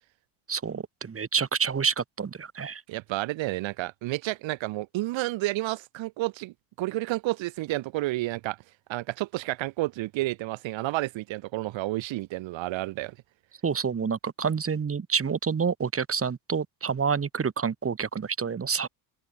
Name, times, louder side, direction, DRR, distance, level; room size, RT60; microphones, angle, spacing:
voice 1, 0.5-2.8 13.6-18.9, right 6 dB, 25° right, 3.2 m, -28 dB
voice 2, 2.9-8.6 8.9-13.2, right 18 dB, 65° right, 4.5 m, -30 dB
open air
supercardioid pair, 95°, 49 cm